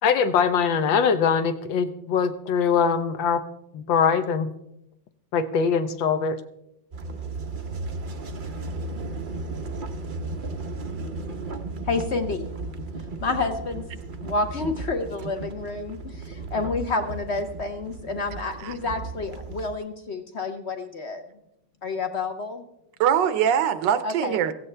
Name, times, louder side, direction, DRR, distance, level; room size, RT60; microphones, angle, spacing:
voice 1, 0.0-3.4 3.7-4.5 5.3-6.4, left 6 dB, 85° left, 10 dB, 1.6 m, -22 dB
sound 1, 6.9-19.8, right 3 dB, 50° right, 0.5 m, -35 dB
voice 2, 11.8-12.5 13.2-13.8 14.2-21.2 21.8-22.6 24.0-24.4, left 3 dB, 50° left, 7 dB, 0.8 m, -29 dB
voice 3, 18.4-18.7 23.0-24.5, right 9 dB, 80° right, 12 dB, 1.4 m, -23 dB
16.5 x 15.0 x 3.3 m, 0.81 s
omnidirectional pair, 2.0 m